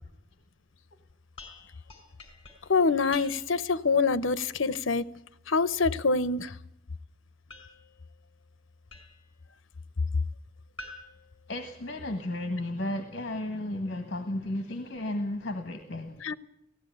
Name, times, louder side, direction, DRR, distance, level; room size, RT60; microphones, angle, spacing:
sound 1, 1.4-3.8 7.5-9.4 10.8-12.2, left 3 dB, 30° left, 4.3 m, -49 dB
voice 1, 2.7-5.0 5.5-6.6 16.2-16.3, left 4 dB, 75° left, 0.8 m, -25 dB
voice 2, 11.5-16.2, left 1 dB, 55° left, 1.6 m, -33 dB
18.0 x 16.0 x 9.3 m
head